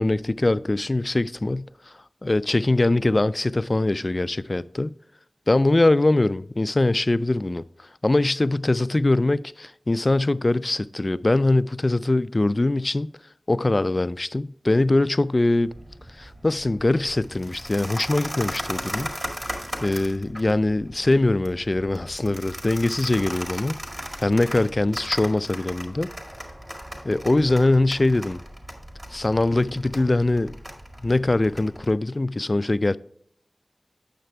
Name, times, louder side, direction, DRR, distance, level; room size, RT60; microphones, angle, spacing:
voice 1, 0.0-1.7 2.2-4.9 5.5-7.6 8.0-13.1 13.5-15.7 16.2-19.1 19.8-23.8 24.2-26.1 27.0-28.4 29.1-30.6 31.0-33.0, left 2 dB, 40° left, 0.3 m, -22 dB
sound 1, 15.6-31.9, equal, 25° right, 1.9 m, -37 dB
9.1 x 6.6 x 3.3 m
wide cardioid pair, 55°, 0 cm